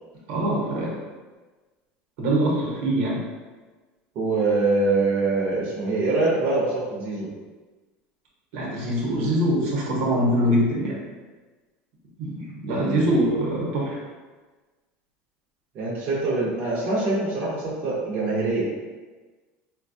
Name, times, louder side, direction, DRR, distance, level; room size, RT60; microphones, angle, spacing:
voice 1, 0.3-0.9 2.2-3.2 8.5-11.0 12.2-14.0, right 1 dB, 75° right, -3 dB, 1.0 m, -23 dB
voice 2, 4.1-7.3 12.7-13.6 15.7-18.6, right 3 dB, 45° right, -5 dB, 0.7 m, -24 dB
3.8 x 2.2 x 2.6 m, 1.3 s
supercardioid pair, 135°, 4 cm